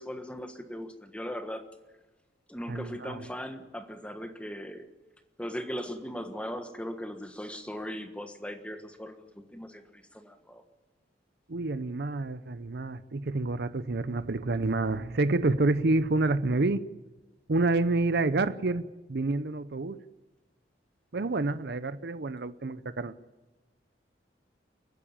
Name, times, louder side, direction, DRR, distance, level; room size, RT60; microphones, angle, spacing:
voice 1, 0.0-1.6 2.5-4.9 5.4-10.6, equal, 5° left, 7 dB, 1.4 m, -39 dB
voice 2, 2.7-3.3 11.5-16.8 17.5-20.0 21.1-23.1, right 2 dB, 60° right, 13 dB, 0.7 m, -28 dB
30.0 x 10.0 x 9.0 m, 1.1 s
head